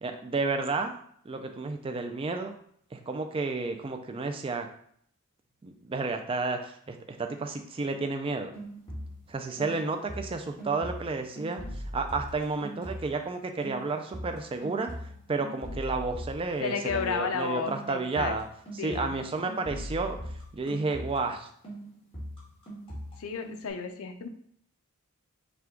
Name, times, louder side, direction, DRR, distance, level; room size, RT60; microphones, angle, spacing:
voice 1, 0.0-0.9 1.3-2.6 2.9-4.7 5.6-8.5 9.3-14.9 15.3-18.4 18.8-20.2 20.5-21.5, right 3 dB, 25° right, 5 dB, 0.3 m, -31 dB
sound 1, 8.5-9.3 9.6-13.3 13.6-21.4 21.6-23.7, equal, 25° left, 1.5 m, -41 dB
voice 2, 16.6-18.3 18.8-19.1 23.2-24.3, left 5 dB, 70° left, 6 dB, 0.5 m, -32 dB
5.8 x 2.3 x 3.7 m, 0.64 s
head